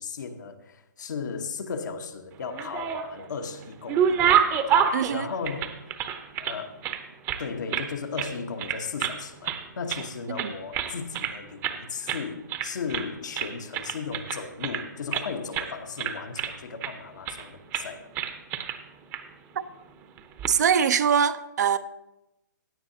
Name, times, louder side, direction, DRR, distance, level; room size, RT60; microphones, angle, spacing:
voice 1, 0.0-4.2 4.8-5.8 6.4-6.8 7.4-18.1, left 5 dB, 70° left, 1.2 m, -36 dB
sound 1, 2.4-3.3 3.6-6.6 6.8-7.9 8.2-8.3 8.6-9.2 9.4-10.1 10.4-11.4 11.6-11.8 12.1-12.2 12.5-13.1 13.4-15.3 15.5-15.7 16.0-16.9 17.3-17.5 17.7-17.9 18.2-18.8 19.1-19.2 20.2-20.5, right 8 dB, 20° right, 0.8 m, -27 dB
voice 2, 4.9-5.3 10.3-10.5 20.5-21.8, right 7 dB, 60° right, 0.7 m, -23 dB
16.5 x 9.5 x 2.8 m
hypercardioid pair, 140°, 10 cm